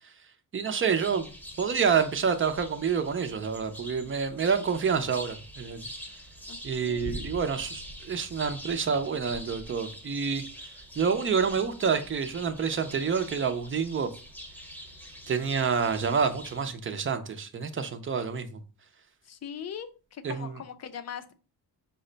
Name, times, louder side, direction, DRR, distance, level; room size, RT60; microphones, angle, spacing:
voice 1, 0.5-1.3 1.6-5.9 6.6-10.4 11.0-14.1 15.3-18.6 20.2-20.6, right 6 dB, 30° right, 0.6 m, -28 dB
sound 1, 1.0-16.6, equal, 5° left, 0.9 m, -44 dB
voice 2, 6.5-7.2 19.2-21.3, left 8 dB, 40° left, 0.5 m, -41 dB
5.5 x 2.2 x 3.8 m
cardioid pair, 130°, 41 cm